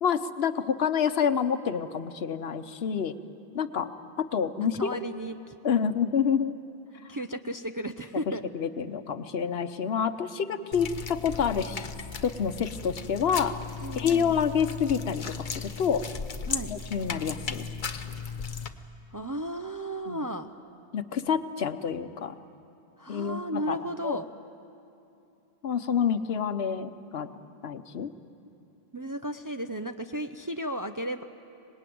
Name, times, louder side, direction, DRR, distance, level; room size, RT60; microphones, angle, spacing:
voice 1, 0.0-3.1 3.5-3.9 4.2-4.9 5.6-6.5 8.5-11.9 12.2-13.5 13.9-16.0 16.7-17.6 20.1-20.3 20.9-22.4 23.1-24.2 25.6-27.3 27.6-28.1, left 7 dB, 75° left, 11 dB, 1.1 m, -28 dB
voice 2, 4.8-5.5 7.1-8.4 13.8-14.4 16.5-16.7 18.4-18.6 19.1-20.6 23.0-24.3 28.9-31.2, right 1 dB, 25° right, 7 dB, 0.5 m, -34 dB
sound 1, 10.7-18.7, left 5 dB, 55° left, 1.0 m, -36 dB
25.0 x 20.0 x 9.3 m, 2.6 s
omnidirectional pair, 1.0 m